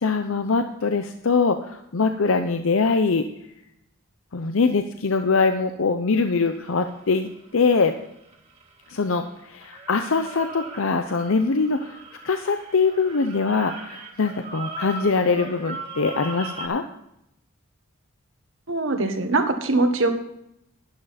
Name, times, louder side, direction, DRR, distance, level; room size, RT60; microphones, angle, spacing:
voice 1, 0.0-3.3 4.3-8.0 8.9-12.0 12.2-16.8, left 4 dB, 70° left, 7 dB, 0.7 m, -23 dB
sound 1, 6.2-9.3 9.6-16.7, right 2 dB, 30° right, 1.9 m, -39 dB
voice 2, 18.7-20.1, right 2 dB, 65° right, 6 dB, 1.4 m, -22 dB
11.5 x 11.5 x 4.2 m, 0.79 s
head